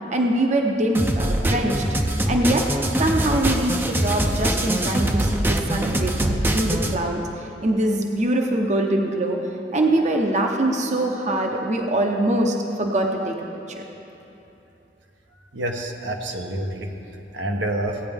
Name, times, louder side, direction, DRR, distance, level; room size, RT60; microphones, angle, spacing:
voice 1, 0.1-1.8 2.3-2.7 3.0-9.4 9.7-13.4, right 1 dB, 40° right, 2 dB, 0.7 m, -23 dB
sound 1, 0.9-6.9, right 1 dB, 10° right, 0.5 m, -23 dB
voice 2, 15.5-16.9 17.3-18.0, right 1 dB, 80° right, 3 dB, 1.0 m, -27 dB
16.5 x 9.0 x 3.5 m, 3.0 s
head